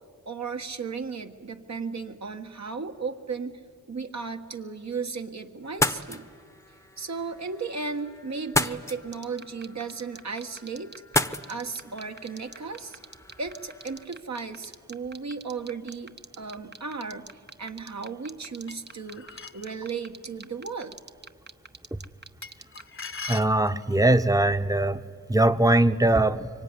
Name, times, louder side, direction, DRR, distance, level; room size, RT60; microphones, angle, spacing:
voice 1, 0.2-3.6 3.9-6.3 7.0-11.0 11.5-13.0 13.4-21.0, right 5 dB, 60° right, 5 dB, 1.6 m, -35 dB
sound 1, 5.6-14.0, left 1 dB, 10° left, 1.0 m, -33 dB
sound 2, 9.1-23.3, right 4 dB, 35° right, 0.9 m, -43 dB
sound 3, 18.7-19.7 22.4-24.1, left 4 dB, 40° left, 1.0 m, -40 dB
voice 2, 23.3-25.0 25.3-26.5, right 1 dB, 10° right, 11 dB, 1.0 m, -21 dB
24.5 x 24.0 x 9.8 m, 2.3 s
cardioid pair, 50°, 32 cm